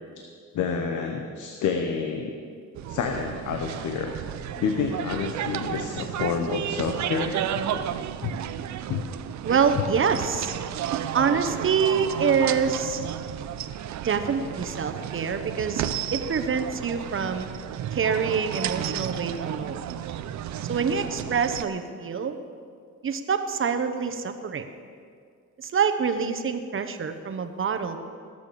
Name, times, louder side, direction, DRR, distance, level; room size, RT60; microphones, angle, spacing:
voice 1, 0.5-2.3 2.9-7.9 8.2-8.3 8.9-9.0, left 5 dB, 80° left, 4 dB, 1.1 m, -29 dB
sound 1, 2.7-21.6, right 10 dB, 70° right, 0.7 m, -32 dB
voice 2, 9.4-10.5 11.1-13.0 14.0-15.8 16.1-17.5 17.9-19.9 20.7-22.4 23.0-24.6 25.6-28.0, right 6 dB, 45° right, 8 dB, 1.1 m, -26 dB
17.5 x 6.9 x 6.9 m, 2.2 s
cardioid pair, 90°, 30 cm